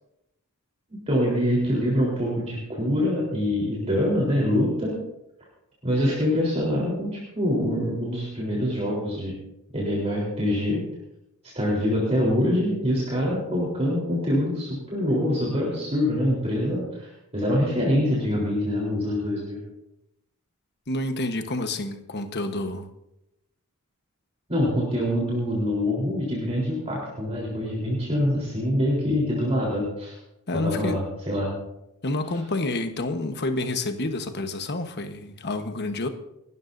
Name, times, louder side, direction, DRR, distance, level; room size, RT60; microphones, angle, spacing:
voice 1, 1.1-4.9 5.8-9.3 9.7-10.8 11.5-19.6 24.5-30.2 30.5-31.5, left 1 dB, 30° right, 3.8 m, -25 dB
voice 2, 20.9-22.9 30.5-31.0 32.0-36.1, left 2 dB, 50° left, 1.2 m, -29 dB
30.0 x 12.5 x 2.7 m
head